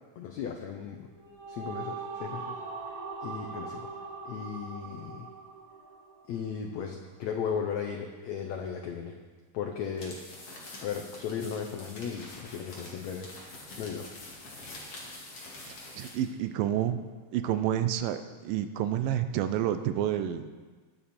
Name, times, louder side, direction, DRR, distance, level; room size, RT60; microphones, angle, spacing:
voice 1, 0.2-1.1 1.5-2.6 3.2-3.9 4.3-5.3 6.3-9.1 9.5-10.2 10.8-13.3 13.8-14.1, left 7 dB, 80° left, 3 dB, 1.6 m, -36 dB
sound 1, 1.0-6.5, right 4 dB, 45° right, 4.1 m, -41 dB
sound 2, 9.9-16.3, left 2 dB, 45° left, 2.8 m, -46 dB
voice 2, 15.7-17.0 17.3-20.5, right 11 dB, 80° right, 10 dB, 2.3 m, -29 dB
19.5 x 7.0 x 4.3 m, 1.4 s
omnidirectional pair, 4.1 m